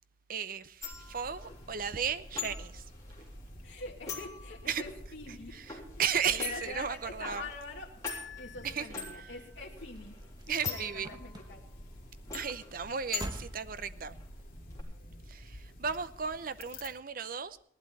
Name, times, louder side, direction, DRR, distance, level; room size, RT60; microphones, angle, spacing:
voice 1, 0.3-2.8 4.7-4.8 5.5-7.5 8.6-8.9 9.1-9.3 10.5-11.1 12.3-14.2 15.3-17.6, right 7 dB, 50° right, 0.7 m, -35 dB
sound 1, 0.8-14.8, left 5 dB, 15° left, 3.5 m, -44 dB
sound 2, 0.9-16.9, left 1 dB, 45° left, 2.4 m, -51 dB
voice 2, 3.6-5.6 6.3-7.9 8.4-10.1 10.5-11.6, left 2 dB, 75° left, 2.2 m, -44 dB
sound 3, 9.7-14.5 15.2-15.6 15.9-16.0, right 1 dB, 20° right, 1.2 m, -46 dB
17.5 x 11.5 x 4.2 m
head